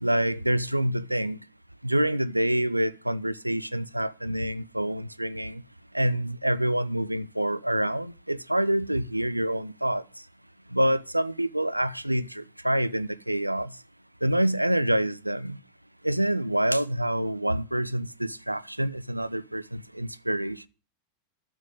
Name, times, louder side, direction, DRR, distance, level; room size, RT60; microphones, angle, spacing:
voice 1, 0.0-1.4 1.8-5.6 5.9-10.0 10.7-13.7 14.2-15.6 16.0-20.7, right 1 dB, 85° right, 0.6 m, -27 dB
11.5 x 7.4 x 7.8 m
figure-of-eight pair, 90°, 0 cm